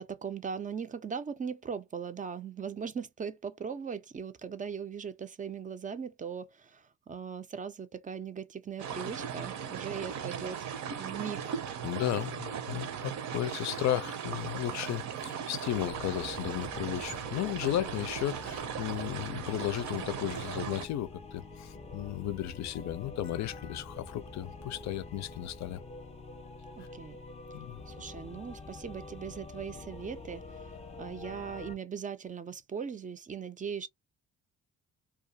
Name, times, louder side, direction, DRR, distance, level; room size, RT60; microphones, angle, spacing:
voice 1, 0.0-10.7 11.0-11.5 26.8-27.2 27.9-30.7 31.0-33.9, right 6 dB, 25° right, 0.4 m, -39 dB
sound 1, 8.8-20.9, right 8 dB, 65° right, 0.6 m, -38 dB
voice 2, 11.8-25.8 27.5-27.8, left 13 dB, 65° left, 0.5 m, -34 dB
sound 2, 15.7-31.7, left 3 dB, 20° left, 0.6 m, -46 dB
2.3 x 2.3 x 2.7 m
cardioid pair, 90°, 30 cm